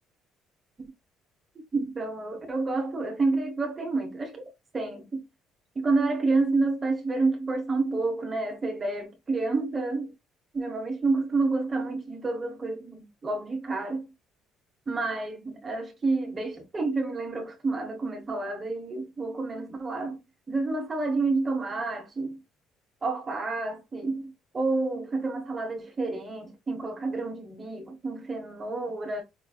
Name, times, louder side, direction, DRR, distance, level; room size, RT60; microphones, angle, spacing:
voice 1, 1.7-5.2 5.7-10.1 10.5-14.1 14.9-20.2 20.5-22.4 23.0-29.2, right 3 dB, 20° right, 1.2 m, -29 dB
5.3 x 3.3 x 2.3 m
cardioid pair, 175°, 0 cm